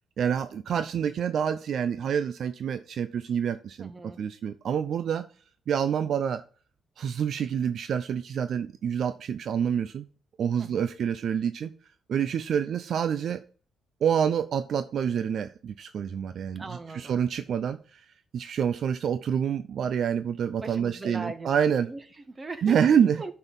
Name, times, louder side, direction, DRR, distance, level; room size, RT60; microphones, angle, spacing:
voice 1, 0.2-3.9 4.2-5.2 5.7-6.4 7.0-10.0 10.4-11.7 12.1-13.4 14.0-16.6 16.9-18.0 18.3-21.9 22.6-23.2, right 8 dB, 60° right, 0.5 m, -27 dB
voice 2, 3.8-4.2 10.6-10.8 16.5-17.2 20.6-22.8 23.2-23.3, right 3 dB, 25° right, 1.3 m, -39 dB
9.6 x 4.5 x 5.4 m
cardioid pair, 90°, 0 cm